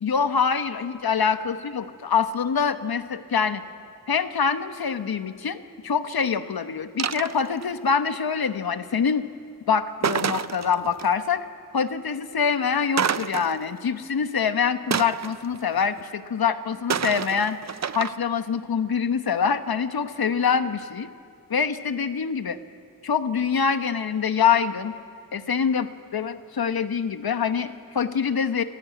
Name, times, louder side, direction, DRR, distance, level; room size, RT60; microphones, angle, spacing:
voice 1, 0.0-3.6 4.1-9.2 9.7-11.5 11.7-17.6 17.9-21.1 21.5-22.6 23.0-24.9 25.3-28.6, left 6 dB, 90° left, 10 dB, 1.1 m, -25 dB
sound 1, 7.0-7.7 10.0-11.1 13.0-13.8 14.9-16.0 16.9-18.1, right 7 dB, 50° right, 0.6 m, -28 dB
26.0 x 16.5 x 9.3 m, 2.2 s
wide cardioid pair, 75°, 35 cm